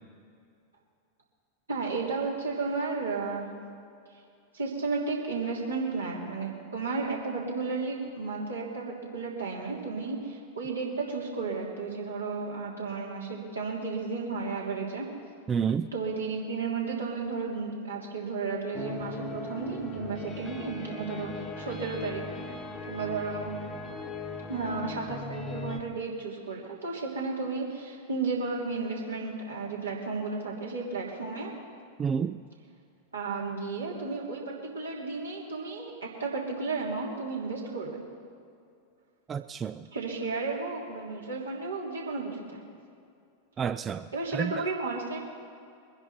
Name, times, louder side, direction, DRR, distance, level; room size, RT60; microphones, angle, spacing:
voice 1, 1.7-3.5 4.5-15.1 15.9-22.2 22.9-23.5 24.5-31.5 33.1-38.0 39.9-42.6 44.1-45.2, right 4 dB, 75° right, -3 dB, 3.2 m, -33 dB
voice 2, 15.5-15.9 32.0-32.4 39.3-39.9 43.6-44.6, right 7 dB, 20° right, 11 dB, 0.4 m, -30 dB
sound 1, 18.7-25.8, left 3 dB, 20° left, 1.2 m, -39 dB
23.0 x 10.5 x 4.3 m, 2.4 s
figure-of-eight pair, 90°, 0 cm